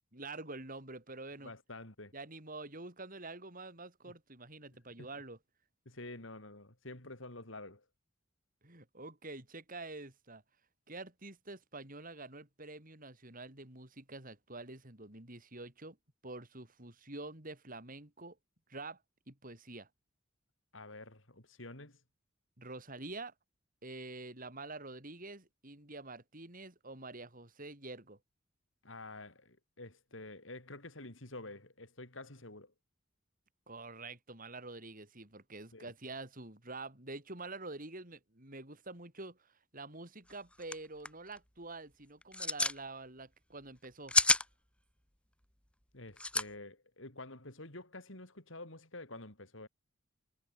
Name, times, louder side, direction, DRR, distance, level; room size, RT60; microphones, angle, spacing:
voice 1, 0.1-1.5 2.1-5.4 8.6-10.4 10.9-16.0 16.2-18.4 18.7-19.0 19.3-19.9 22.6-23.3 23.8-28.2 33.7-44.1, right 2 dB, 45° right, 6.0 m, -47 dB
voice 2, 1.4-2.1 4.1-4.2 5.0-5.1 5.9-7.8 20.7-22.0 28.8-32.7 35.7-35.9 45.9-49.7, left 2 dB, 70° left, 5.4 m, -49 dB
sound 1, 40.3-40.4 40.6-40.7 41.1-41.4 42.2-42.8 43.8-44.4 46.2-46.4, left 2 dB, 5° left, 1.7 m, -28 dB
head